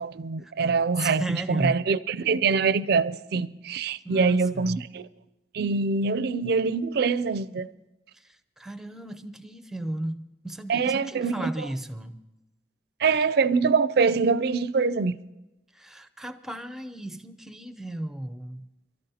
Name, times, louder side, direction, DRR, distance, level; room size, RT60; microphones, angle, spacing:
voice 1, 0.0-5.1 5.5-7.7 10.7-11.5 13.0-15.2, right 5 dB, 60° right, 0.4 m, -24 dB
voice 2, 0.9-1.8 4.0-4.9 8.1-12.2 15.7-18.7, right 1 dB, 5° right, 0.6 m, -35 dB
27.5 x 13.0 x 2.8 m
head